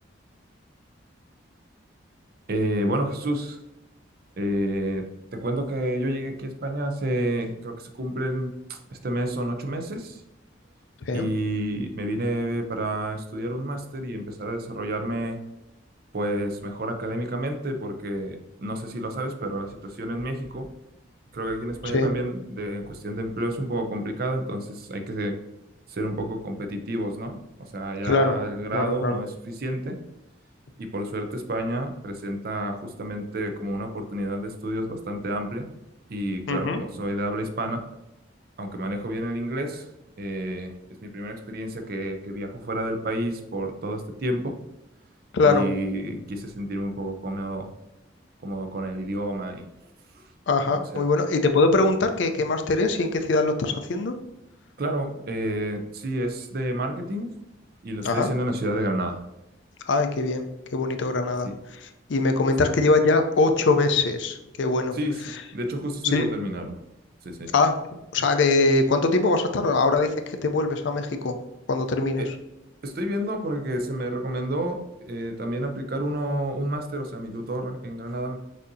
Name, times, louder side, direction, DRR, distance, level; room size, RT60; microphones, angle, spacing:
voice 1, 2.5-3.6 4.4-10.2 11.1-15.4 16.1-20.7 21.3-25.4 25.9-30.0 30.8-35.7 36.1-37.9 38.6-39.9 40.2-44.6 45.4-47.7 48.4-49.7 50.1-50.3 50.9-51.0 54.8-57.3 57.8-59.2 61.4-61.5 64.9-65.2 65.5-66.8 67.2-67.5 72.2-72.3 72.8-78.4, right 1 dB, 50° right, 6 dB, 0.5 m, -30 dB
voice 2, 28.0-28.4 28.7-29.2 36.5-36.8 45.3-45.6 50.5-54.1 58.0-58.3 59.9-60.4 60.7-65.0 66.1-66.3 67.5-67.7 68.1-71.3 71.7-72.2, left 3 dB, 75° left, 7 dB, 0.5 m, -22 dB
6.2 x 2.7 x 2.6 m, 0.92 s
head